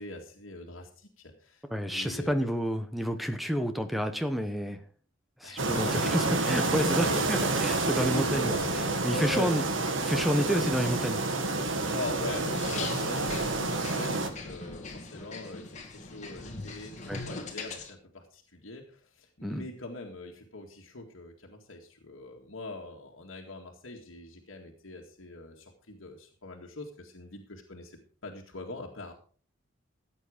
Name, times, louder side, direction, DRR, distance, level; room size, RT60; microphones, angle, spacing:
voice 1, 0.0-1.6 1.9-2.5 5.4-6.4 6.7-9.5 11.9-29.1, left 2 dB, 80° left, 0 dB, 2.0 m, -41 dB
voice 2, 1.7-4.8 5.4-8.5 9.0-9.6 10.0-11.4 17.1-17.2 19.4-19.7, equal, ahead, 8 dB, 1.0 m, -29 dB
sound 1, 5.6-14.3, right 3 dB, 75° right, 2.0 m, -29 dB
sound 2, 12.5-17.9, left 3 dB, 35° left, 2.3 m, -40 dB
14.5 x 8.7 x 5.1 m, 0.43 s
head